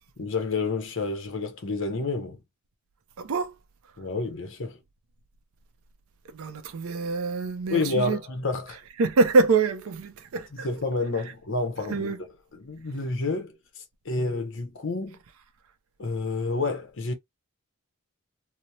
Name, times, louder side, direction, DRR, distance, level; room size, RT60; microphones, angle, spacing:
voice 1, 0.2-2.4 4.0-4.8 7.7-8.8 10.5-12.2 12.5-13.6 14.0-15.2 16.0-17.1, left 3 dB, 60° left, 0.7 m, -29 dB
voice 2, 3.2-3.5 6.3-8.2 9.0-10.7 11.9-12.2, right 3 dB, 75° right, 0.5 m, -25 dB
3.0 x 2.0 x 2.7 m
head